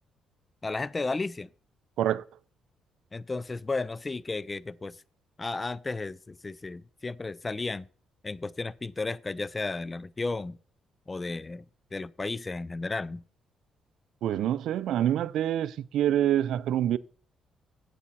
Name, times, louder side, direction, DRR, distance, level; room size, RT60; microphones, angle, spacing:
voice 1, 0.6-1.5 3.1-5.0 5.4-7.9 8.2-10.6 11.1-11.6 11.9-13.2, left 3 dB, 25° left, 0.4 m, -33 dB
voice 2, 14.2-17.0, right 11 dB, 80° right, 0.4 m, -26 dB
8.7 x 8.3 x 4.2 m
cardioid pair, 90°, 0 cm